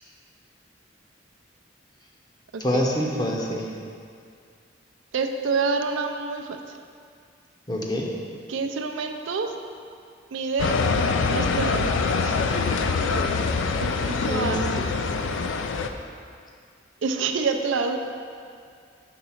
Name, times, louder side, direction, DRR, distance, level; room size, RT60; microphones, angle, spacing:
voice 1, 2.6-3.7 7.7-8.1 14.3-14.6, left 1 dB, 20° left, -1 dB, 0.7 m, -25 dB
voice 2, 5.1-6.8 8.5-9.6 10.3-10.8 11.3-12.4 13.8-14.6 17.0-18.0, right 4 dB, 85° right, 5 dB, 0.5 m, -27 dB
sound 1, 10.6-15.9, left 4 dB, 80° left, 0.4 m, -24 dB
6.1 x 3.9 x 5.6 m, 2.3 s
head